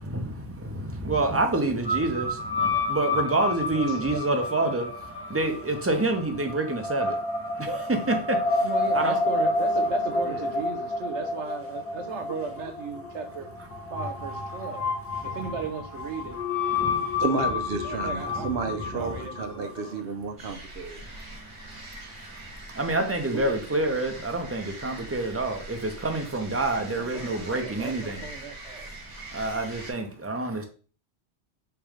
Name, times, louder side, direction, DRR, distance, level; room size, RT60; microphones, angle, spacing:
voice 1, 0.0-9.2 10.2-10.4 14.5-14.7 15.2-15.3 16.7-17.2 21.3-21.9 22.2-28.2 29.2-30.6, right 2 dB, 15° right, 0.5 m, -28 dB
sound 1, 1.9-20.0, left 3 dB, 60° left, 1.1 m, -30 dB
voice 2, 8.6-13.5 13.9-14.9 15.2-16.4 17.8-20.0 23.3-23.8 26.8-29.1 30.2-30.4, right 5 dB, 80° right, 1.1 m, -37 dB
voice 3, 17.2-21.0, right 4 dB, 60° right, 0.7 m, -31 dB
sound 2, 20.4-29.9, right 1 dB, 45° right, 1.3 m, -43 dB
3.4 x 3.1 x 4.8 m
omnidirectional pair, 1.2 m